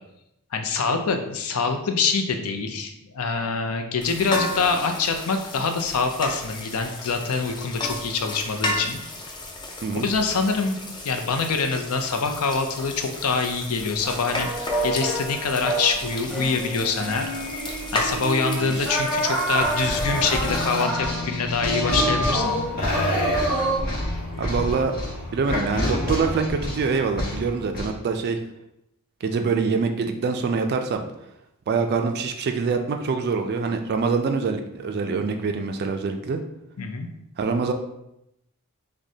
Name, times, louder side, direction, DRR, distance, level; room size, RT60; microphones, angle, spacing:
voice 1, 0.5-9.0 9.9-10.8 11.0-17.3 17.9-22.4 36.8-37.1, left 4 dB, 70° left, 5 dB, 0.5 m, -25 dB
sound 1, 4.0-20.8, left 2 dB, 20° left, 0.5 m, -34 dB
sound 2, 14.0-23.8, right 1 dB, ahead, 1.0 m, -28 dB
sound 3, 19.6-27.9, left 1 dB, 40° left, 1.1 m, -28 dB
voice 2, 24.4-24.9 25.3-28.4 29.2-31.0 31.7-36.4 37.4-37.7, right 4 dB, 45° right, 6 dB, 0.3 m, -25 dB
6.1 x 2.2 x 2.7 m, 0.83 s
head